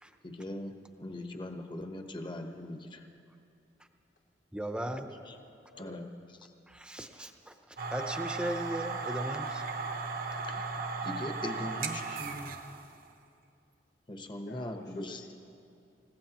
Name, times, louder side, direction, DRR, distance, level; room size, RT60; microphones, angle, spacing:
voice 1, 0.2-0.7 1.0-3.1 5.3-5.4 5.8-6.1 10.5-10.6 11.0-12.5 14.1-15.2, left 1 dB, 30° left, 5 dB, 1.0 m, -40 dB
voice 2, 4.5-5.1 6.7-9.6, right 1 dB, 5° right, 6 dB, 0.7 m, -37 dB
voice 3, 5.7-6.1 14.3-15.3, left 2 dB, 75° left, 0 dB, 1.2 m, -50 dB
sound 1, 7.8-12.9, right 4 dB, 55° right, 0.9 m, -36 dB
29.0 x 16.0 x 3.0 m, 2.7 s
head